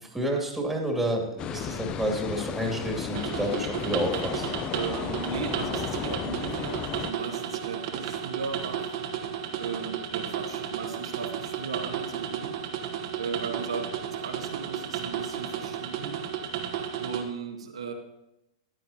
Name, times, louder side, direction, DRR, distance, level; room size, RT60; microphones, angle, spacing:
voice 1, 0.0-4.5, right 1 dB, 5° right, 0 dB, 2.5 m, -29 dB
sound 1, 1.4-7.1, left 9 dB, 30° left, 0.5 m, -34 dB
sound 2, 3.1-17.2, right 8 dB, 55° right, 1.3 m, -33 dB
voice 2, 4.7-9.0 9.6-12.5 13.1-16.3 17.0-17.9, right 5 dB, 90° right, 1 dB, 1.6 m, -36 dB
14.0 x 10.5 x 2.8 m, 0.89 s
hypercardioid pair, 120°, 3 cm